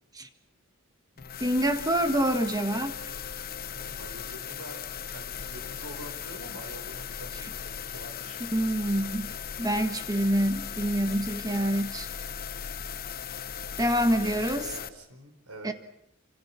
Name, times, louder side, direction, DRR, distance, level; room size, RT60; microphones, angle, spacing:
sound 1, 1.2-14.9, left 8 dB, 45° left, 0.8 m, -38 dB
voice 1, 1.4-3.1 8.5-9.3 9.6-12.1 13.8-14.7 15.6-15.7, right 1 dB, 15° right, 8 dB, 1.7 m, -26 dB
voice 2, 3.7-8.4 13.9-15.7, right 1 dB, 80° right, 6 dB, 5.1 m, -46 dB
27.0 x 27.0 x 6.0 m, 0.81 s
head